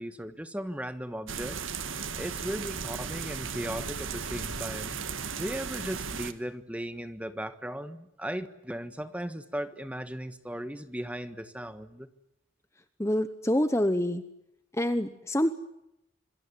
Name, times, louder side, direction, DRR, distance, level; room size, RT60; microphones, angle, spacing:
voice 1, 0.0-1.7 2.1-5.0 5.4-12.1, equal, 5° right, 11 dB, 1.4 m, -37 dB
sound 1, 1.3-6.3, right 6 dB, 80° right, 1.8 m, -36 dB
voice 2, 13.0-14.2 14.8-15.5, left 1 dB, 15° left, 10 dB, 1.0 m, -26 dB
26.5 x 22.5 x 9.7 m, 0.83 s
head